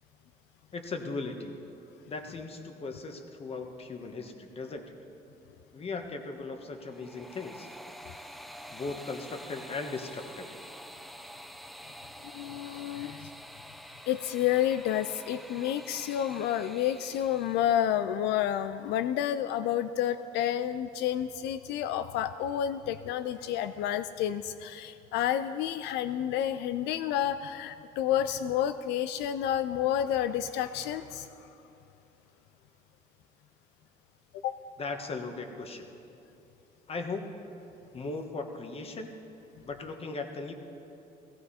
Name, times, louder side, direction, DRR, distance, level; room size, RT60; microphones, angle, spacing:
voice 1, 0.7-1.6 2.1-4.9 5.7-7.7 8.4-10.5 34.8-35.9 36.9-37.3 37.9-39.1 39.6-40.5, left 3 dB, 35° left, 5 dB, 1.4 m, -38 dB
sound 1, 6.8-17.8, equal, ahead, 0.5 m, -47 dB
voice 2, 12.2-13.3 14.1-31.5 34.4-34.6, left 10 dB, 85° left, 11 dB, 0.4 m, -30 dB
16.0 x 16.0 x 4.3 m, 2.8 s
cardioid pair, 110°, 17 cm